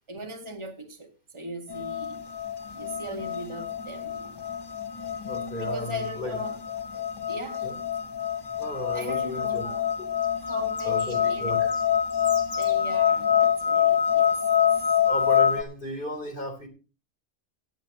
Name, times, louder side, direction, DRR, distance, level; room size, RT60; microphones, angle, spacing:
voice 1, 0.1-2.2 2.7-4.4 5.6-6.6 7.3-7.7 8.9-9.9 10.3-11.6 12.6-14.6, equal, 25° right, 1.9 m, -39 dB
sound 1, 1.7-15.6, left 8 dB, 25° left, 0.7 m, -26 dB
voice 2, 5.3-6.4 7.6-7.8 8.6-9.6 10.5-11.8 12.1-12.8 15.0-16.7, left 1 dB, 45° left, 3.6 m, -35 dB
18.0 x 10.0 x 2.9 m
omnidirectional pair, 1.2 m